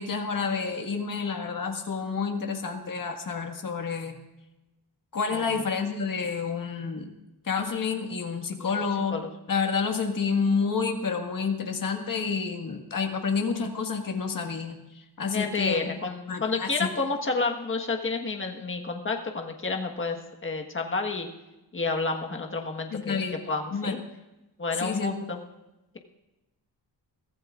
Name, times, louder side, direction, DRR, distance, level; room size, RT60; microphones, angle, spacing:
voice 1, 0.0-4.2 5.1-7.1 7.4-9.2 9.5-15.9 16.3-16.9 22.9-23.4 23.7-23.9 24.8-25.1, left 5 dB, 50° left, 3 dB, 1.8 m, -29 dB
voice 2, 8.6-9.3 15.3-21.3 21.7-24.0 24.6-25.4, left 3 dB, 30° left, 3 dB, 1.5 m, -30 dB
23.0 x 15.0 x 2.5 m, 1.0 s
wide cardioid pair, 150°, 41 cm